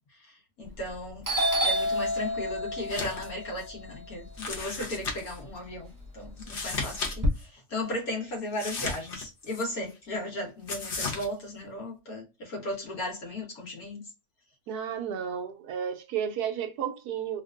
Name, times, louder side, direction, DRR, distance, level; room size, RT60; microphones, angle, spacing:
voice 1, 0.2-1.2 1.6-14.0, left 1 dB, 70° left, 1.7 m, -36 dB
Doorbell, 0.7-1.0 1.2-5.4 5.8-7.3, equal, 25° right, 0.4 m, -30 dB
sound 1, 2.8-3.3 3.6-3.7 4.4-5.4 6.4-7.1 7.4-7.5 8.5-9.6 10.7-11.3, left 3 dB, 45° left, 0.8 m, -34 dB
voice 2, 14.7-17.4, right 8 dB, 90° right, 1.2 m, -32 dB
3.5 x 2.5 x 2.3 m
omnidirectional pair, 1.6 m